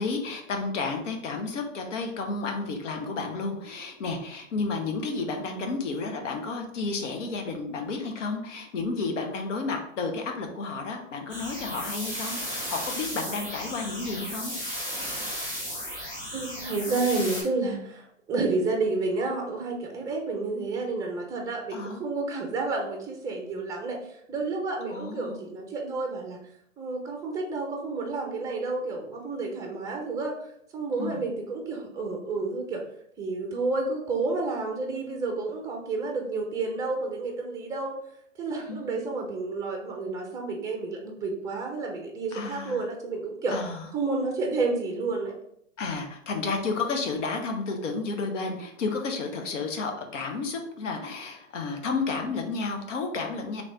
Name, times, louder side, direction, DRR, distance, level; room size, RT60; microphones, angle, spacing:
voice 1, 0.0-14.5 21.7-22.0 24.9-25.4 31.0-31.2 38.7-39.1 42.3-42.8 43.5-43.9 45.8-53.6, left 4 dB, 65° left, 4 dB, 1.0 m, -31 dB
sound 1, 11.3-17.4, equal, 10° left, 1.3 m, -35 dB
voice 2, 16.3-26.4 26.8-30.4 30.7-32.8 33.2-37.9 38.4-43.6 43.9-45.3, right 3 dB, 10° right, 2 dB, 0.6 m, -30 dB
3.2 x 3.2 x 4.0 m, 0.71 s
hypercardioid pair, 125°, 39 cm